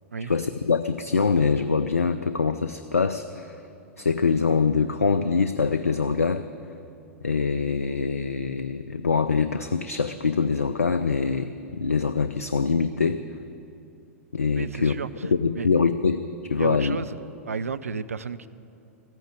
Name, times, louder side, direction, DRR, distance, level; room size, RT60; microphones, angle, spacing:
voice 1, 0.2-3.6 4.0-6.4 7.2-13.2 14.3-15.0 15.2-16.2 16.5-17.0, left 5 dB, 80° left, 11 dB, 0.4 m, -24 dB
voice 2, 14.6-15.1 15.6-15.7 16.6-17.2 17.5-18.5, right 5 dB, 75° right, 13 dB, 0.5 m, -32 dB
14.5 x 9.1 x 8.1 m, 2.7 s
figure-of-eight pair, 95°, 8 cm